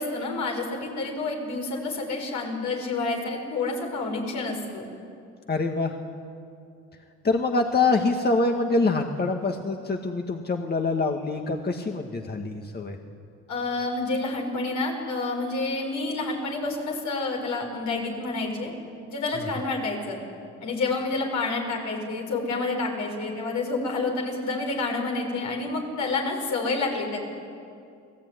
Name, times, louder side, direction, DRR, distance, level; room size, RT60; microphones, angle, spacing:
voice 1, 0.0-4.8 13.5-18.7 19.1-20.2 20.6-27.2, left 3 dB, 70° left, 1 dB, 6.6 m, -29 dB
voice 2, 5.5-6.0 7.2-13.0 19.3-19.6, left 3 dB, 30° left, 3 dB, 2.0 m, -25 dB
29.5 x 19.5 x 9.8 m, 2.5 s
cardioid pair, 90°, 30 cm